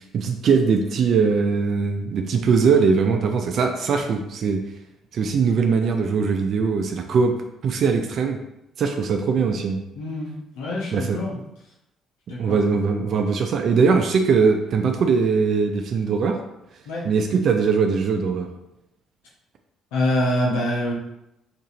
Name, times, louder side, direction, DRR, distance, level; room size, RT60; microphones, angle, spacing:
voice 1, 0.1-4.6 5.1-7.3 7.6-8.4 8.8-9.8 10.9-11.2 12.3-16.4 17.0-18.5, right 5 dB, 60° right, 5 dB, 0.3 m, -21 dB
voice 2, 9.9-11.4 12.3-12.6 16.9-17.1 19.9-20.9, left 1 dB, 85° left, -4 dB, 0.8 m, -25 dB
2.9 x 2.5 x 2.8 m, 0.85 s
supercardioid pair, 65°, 0 cm